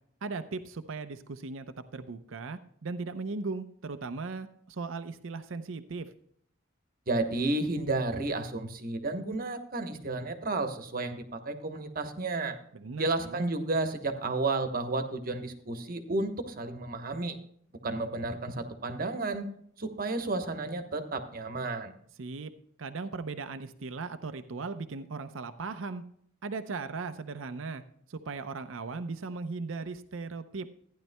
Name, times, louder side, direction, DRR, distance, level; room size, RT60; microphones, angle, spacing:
voice 1, 0.2-1.7 1.9-6.1 12.7-13.4 22.2-22.5 22.8-26.0 26.4-27.8 28.1-30.7, right 4 dB, 80° right, 10 dB, 0.6 m, -37 dB
voice 2, 7.1-12.6 12.9-17.4 17.8-19.4 19.8-21.9, right 2 dB, 45° right, 7 dB, 1.1 m, -32 dB
15.0 x 10.0 x 2.2 m, 0.65 s
head